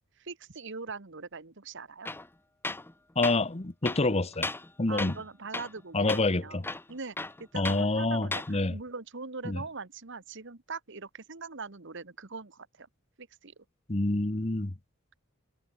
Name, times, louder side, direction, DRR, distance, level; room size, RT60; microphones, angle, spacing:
voice 1, 0.2-2.1 4.9-6.6 6.9-12.9 13.2-13.5, right 4 dB, 55° right, 1.5 m, -42 dB
Tools, 2.1-2.3 2.6-2.9 3.2-3.4 3.8-4.7 5.0-5.3 5.5-5.8 6.1-6.2 6.6-7.9 8.2-8.5, left 2 dB, 10° left, 0.7 m, -35 dB
voice 2, 3.2-4.5 4.8-5.2 5.9-6.6 7.5-8.8 9.4-9.6 13.9-14.7, left 2 dB, 30° left, 1.0 m, -27 dB
head